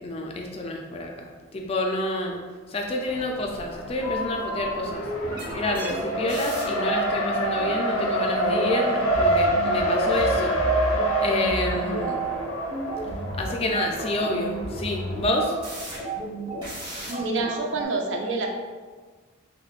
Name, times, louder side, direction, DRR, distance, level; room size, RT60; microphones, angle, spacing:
voice 1, 0.0-2.4 2.7-5.1 5.5-10.6 11.2-12.2 13.4-15.6, left 1 dB, 30° left, 2 dB, 0.3 m, -28 dB
Race car auto racing, 3.1-15.7, right 1 dB, 85° left, 0.5 m, -27 dB
sound 1, 4.0-17.8, right 2 dB, 20° right, 0.8 m, -33 dB
voice 2, 17.1-18.5, right 3 dB, 60° right, 2 dB, 0.4 m, -28 dB
4.9 x 2.1 x 2.4 m, 1.4 s
head